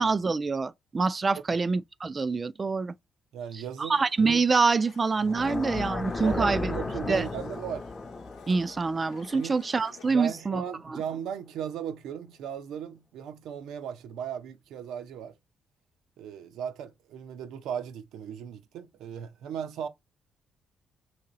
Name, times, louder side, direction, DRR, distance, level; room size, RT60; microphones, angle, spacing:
voice 1, 0.0-2.9 3.5-6.7 7.1-7.2 8.5-10.6 10.9-11.0, right 4 dB, 30° right, 0.3 m, -26 dB
voice 2, 3.3-4.0 6.2-7.9 9.3-9.6 10.1-15.3 16.2-19.9, right 8 dB, 85° right, 0.6 m, -37 dB
Domestic sounds home sounds, 3.9-10.2, left 7 dB, 80° left, 0.7 m, -54 dB
sound 1, 5.2-10.3, left 3 dB, 25° left, 0.5 m, -35 dB
3.0 x 2.8 x 3.9 m
cardioid pair, 90°, 0 cm